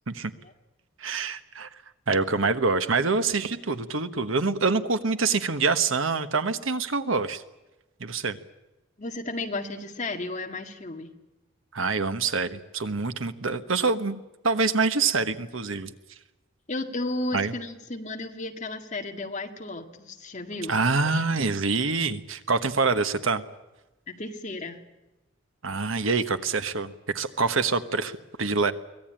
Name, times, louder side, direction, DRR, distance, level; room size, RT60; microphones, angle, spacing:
voice 1, 1.0-1.7 2.1-7.4 8.0-8.4 11.7-15.9 17.3-17.5 20.7-23.4 25.6-28.7, right 4 dB, 75° right, 10 dB, 1.2 m, -26 dB
voice 2, 9.0-11.1 16.7-20.7 24.1-24.8, left 2 dB, 35° left, 4 dB, 1.9 m, -33 dB
24.0 x 17.5 x 8.9 m, 1.0 s
head